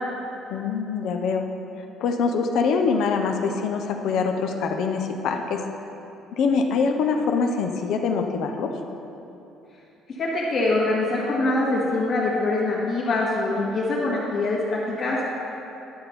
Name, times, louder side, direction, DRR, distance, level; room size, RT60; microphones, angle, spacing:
voice 1, 0.5-1.5 2.0-5.6 6.4-8.7, left 5 dB, 65° left, 4 dB, 0.6 m, -24 dB
voice 2, 10.2-15.2, left 2 dB, 45° left, -8 dB, 1.6 m, -24 dB
11.0 x 6.8 x 4.3 m, 2.9 s
cardioid pair, 155°, 0 cm